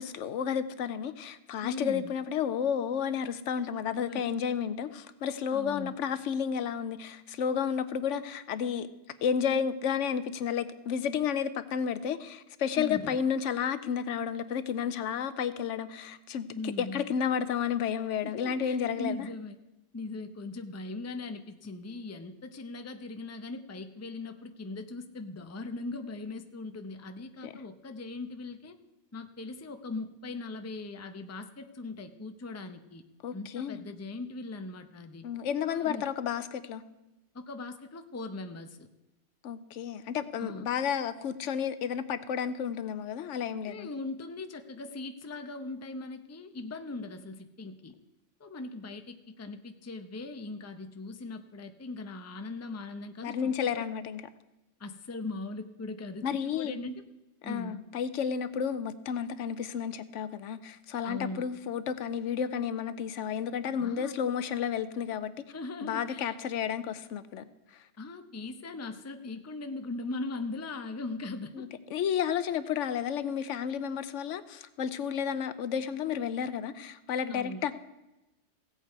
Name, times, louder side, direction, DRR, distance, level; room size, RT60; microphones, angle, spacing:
voice 1, 0.0-8.9 9.2-19.3 27.4-27.5 33.2-33.8 35.2-36.8 39.4-43.9 53.2-54.2 56.2-56.8 57.4-65.4 65.8-67.4 67.7-67.8 71.5-77.8, left 7 dB, 85° left, 13 dB, 1.0 m, -32 dB
voice 2, 1.6-2.1 4.1-4.3 5.5-5.9 12.8-13.2 16.5-17.1 18.2-19.6 19.9-28.8 29.1-33.0 33.3-35.2 35.7-36.0 37.3-38.9 40.4-40.7 43.7-47.9 48.4-53.8 54.8-57.0 57.4-57.8 61.0-61.5 63.8-64.1 65.5-66.4 68.0-71.7 77.3-77.6, left 3 dB, 20° left, 8 dB, 0.5 m, -40 dB
16.0 x 8.1 x 4.6 m, 0.99 s
omnidirectional pair, 1.2 m